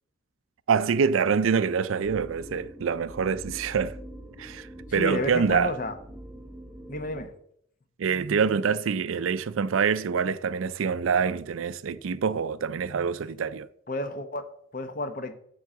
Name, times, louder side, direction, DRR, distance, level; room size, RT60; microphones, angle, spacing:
voice 1, 0.7-4.0 4.4-5.7 8.0-13.7, right 6 dB, 85° right, 0.4 m, -26 dB
sound 1, 2.0-7.2, right 1 dB, 5° right, 1.5 m, -44 dB
voice 2, 4.9-5.9 6.9-7.3 13.9-15.3, left 2 dB, 40° left, 0.8 m, -31 dB
9.3 x 3.8 x 7.1 m
head